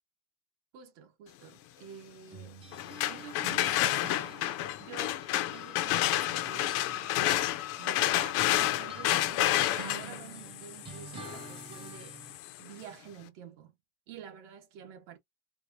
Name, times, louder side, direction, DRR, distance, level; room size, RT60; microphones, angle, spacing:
voice 1, 0.7-2.6 3.0-4.1 4.6-7.2 7.8-12.2 12.6-13.7 14.1-15.2, right 8 dB, 60° right, 1.4 m, -49 dB
sound 1, 2.3-5.8 6.0-12.4, right 5 dB, 15° right, 0.5 m, -49 dB
sound 2, 2.7-12.6, left 14 dB, 40° left, 0.5 m, -30 dB
4.5 x 2.4 x 2.7 m
cardioid pair, 165°, 36 cm